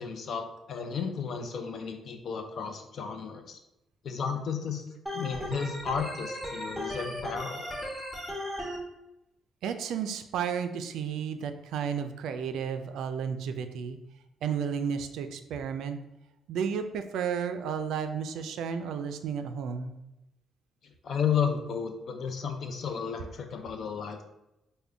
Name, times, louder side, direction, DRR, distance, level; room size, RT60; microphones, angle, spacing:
voice 1, 0.0-3.6 4.0-4.8 5.1-7.7 21.0-24.2, left 6 dB, 60° left, 5 dB, 0.5 m, -33 dB
Organ, 5.1-8.8, equal, 5° left, 1.2 m, -36 dB
voice 2, 9.6-14.0 14.4-16.0 16.5-20.0, right 7 dB, 80° right, 8 dB, 0.3 m, -32 dB
3.6 x 2.2 x 3.3 m, 0.90 s
cardioid pair, 90°, 0 cm